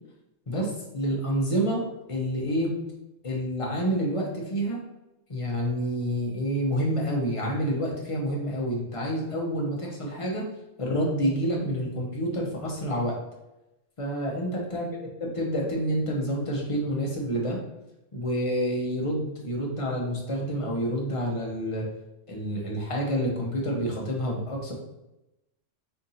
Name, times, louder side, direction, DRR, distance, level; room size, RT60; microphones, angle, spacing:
voice 1, 0.5-2.8 3.2-4.8 5.3-10.4 10.8-13.2 14.0-14.9 15.2-17.6 18.1-21.9 22.3-24.7, equal, 30° left, -2 dB, 0.9 m, -28 dB
4.5 x 2.6 x 4.1 m, 0.93 s
omnidirectional pair, 1.3 m